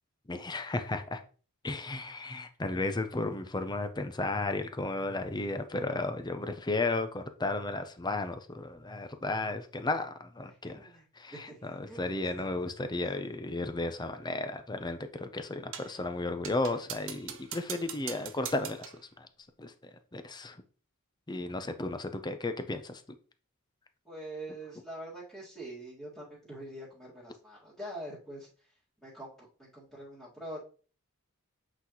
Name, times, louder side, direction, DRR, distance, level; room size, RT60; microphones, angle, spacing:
voice 1, 0.3-1.2 1.6-19.3 19.6-20.6 21.3-23.0, left 2 dB, 20° left, 0.6 m, -34 dB
voice 2, 10.4-11.0 11.3-12.1 12.3-12.4 13.0-13.1 24.0-28.7 29.0-30.6, right 1 dB, ahead, 2.1 m, -45 dB
sound 1, 15.7-16.0 16.4-19.0, right 10 dB, 65° right, 0.6 m, -42 dB
8.0 x 3.9 x 3.0 m
head